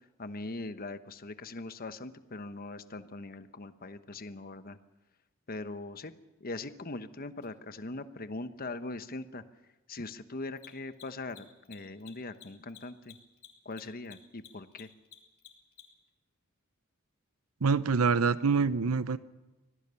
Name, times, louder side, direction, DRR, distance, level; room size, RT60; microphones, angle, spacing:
voice 1, 0.2-4.8 5.5-6.1 6.4-9.4 9.9-13.2 13.6-14.9, left 2 dB, 45° left, 11 dB, 1.1 m, -41 dB
Mechanisms, 7.4-7.5 10.5-16.1, left 11 dB, 85° left, 3.7 m, -53 dB
voice 2, 17.6-19.2, right 5 dB, 85° right, 14 dB, 0.7 m, -25 dB
25.0 x 17.5 x 7.0 m, 1.1 s
head